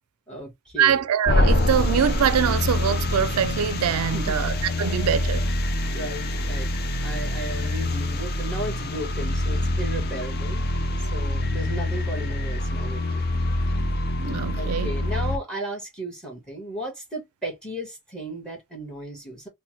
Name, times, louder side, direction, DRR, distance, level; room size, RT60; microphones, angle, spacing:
voice 1, 0.3-1.0 4.1-4.4 5.9-10.6 11.0-13.3 13.7-13.9 14.6-19.5, right 1 dB, 5° left, 1.2 m, -35 dB
voice 2, 0.8-5.4 14.2-14.9, right 8 dB, 85° right, 0.3 m, -23 dB
sound 1, 1.2-15.4, left 1 dB, 45° left, 0.4 m, -25 dB
3.1 x 2.1 x 3.0 m
head